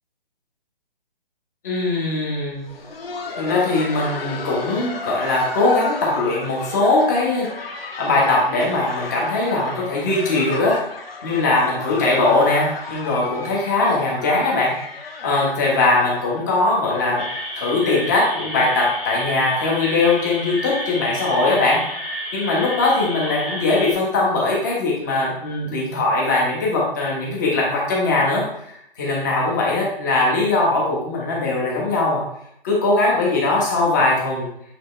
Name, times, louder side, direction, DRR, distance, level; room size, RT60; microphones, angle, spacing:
voice 1, 1.6-2.6 3.4-7.5 7.7-10.7 11.2-14.7 15.2-17.2 17.6-21.8 22.3-32.2 32.6-34.5, left 2 dB, 20° left, -4 dB, 1.2 m, -20 dB
Laughter, 2.5-18.2 18.5-18.6 19.1-19.3 19.8-20.0 21.1-21.2, left 4 dB, 85° left, 1.3 m, -34 dB
sound 1, 17.2-23.9, equal, ahead, 0.8 m, -31 dB
8.1 x 3.6 x 3.2 m, 0.74 s
hypercardioid pair, 170°, 29 cm